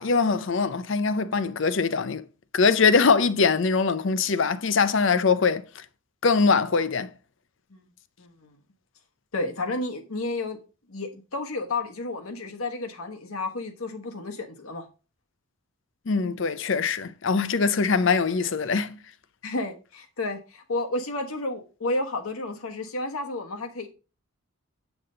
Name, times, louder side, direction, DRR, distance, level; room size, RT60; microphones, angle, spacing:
voice 1, 0.0-2.2 2.5-5.8 6.2-7.1 16.1-19.0, left 4 dB, 60° left, 0.6 m, -22 dB
voice 2, 8.2-8.5 9.3-10.6 10.9-14.9 19.4-23.9, left 2 dB, 80° left, 1.2 m, -31 dB
8.0 x 6.0 x 3.8 m
head